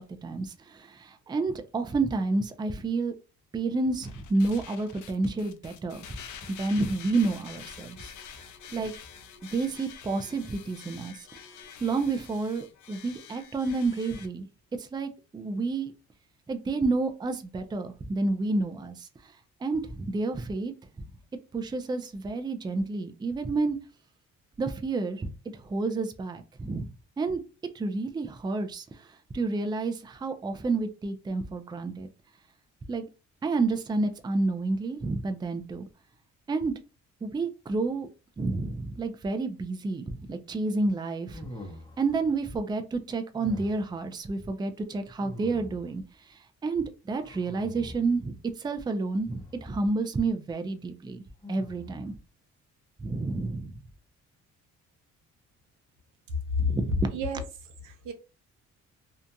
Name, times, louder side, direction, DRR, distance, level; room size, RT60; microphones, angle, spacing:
voice 1, 0.0-3.1 3.5-6.1 6.5-8.1 8.7-8.9 9.5-11.3 11.8-14.4 14.8-15.9 16.5-19.3 19.6-21.1 21.5-23.8 24.6-26.9 27.2-27.4 27.7-32.1 32.9-33.0 33.4-35.9 36.5-36.7 37.2-38.1 38.4-41.5 42.0-46.0 46.3-51.2 51.5-52.2 53.0-53.8 56.6-57.1, right 3 dB, 15° right, 0.4 m, -30 dB
sound 1, 4.0-14.3, left 7 dB, 75° left, 0.6 m, -47 dB
sound 2, 41.3-42.2 43.3-44.0 45.2-46.0 47.2-48.2 49.3-49.8 51.4-52.1, equal, 10° left, 0.7 m, -44 dB
voice 2, 56.3-56.7 57.1-58.1, left 3 dB, 80° right, 0.7 m, -31 dB
2.8 x 2.5 x 2.2 m
cardioid pair, 90°, 30 cm